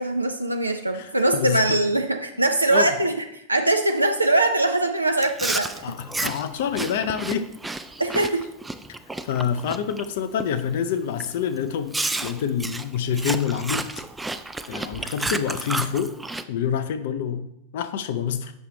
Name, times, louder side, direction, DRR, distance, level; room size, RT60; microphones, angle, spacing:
voice 1, 0.0-6.0 8.0-8.4, right 2 dB, 85° right, 5 dB, 0.4 m, -22 dB
voice 2, 0.9-1.8 2.7-3.0 5.8-7.5 8.1-8.3 9.2-14.0 14.7-16.1 16.5-18.5, left 8 dB, 55° left, 10 dB, 0.5 m, -27 dB
Chewing mastication, 5.2-10.0 10.4-10.7 11.2-11.3 11.9-16.4, right 2 dB, 10° right, 0.3 m, -31 dB
7.2 x 5.7 x 3.1 m, 0.79 s
figure-of-eight pair, 90°, 0 cm